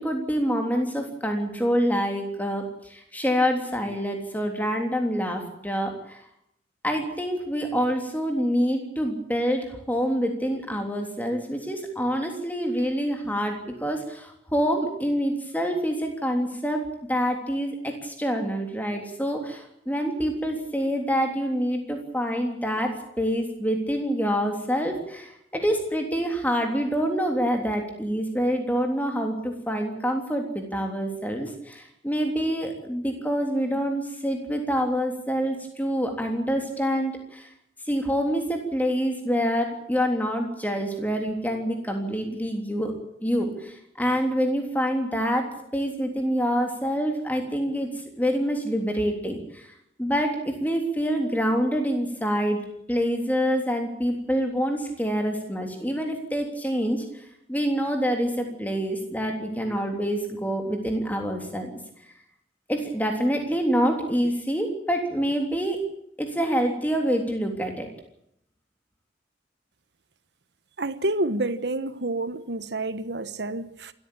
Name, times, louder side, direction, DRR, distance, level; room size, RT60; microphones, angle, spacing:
voice 1, 0.0-6.2 6.8-16.8 17.1-37.5 37.9-42.9 43.2-45.5 45.7-47.9 48.2-49.7 50.0-52.6 52.9-57.0 57.5-61.7 62.7-65.8 66.2-67.9, equal, 10° left, 3.4 m, -26 dB
voice 2, 70.8-73.9, right 2 dB, 65° right, 1.2 m, -28 dB
27.0 x 14.0 x 8.8 m
head